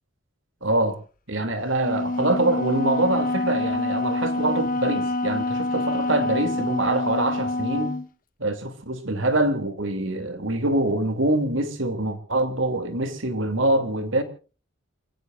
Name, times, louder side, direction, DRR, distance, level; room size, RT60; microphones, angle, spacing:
voice 1, 0.6-1.0 1.3-8.0 8.4-14.2, right 2 dB, 70° right, 2.7 m, -24 dB
Wind instrument woodwind instrument, 1.8-8.1, left 2 dB, 40° left, 0.9 m, -26 dB
28.5 x 17.5 x 2.5 m
head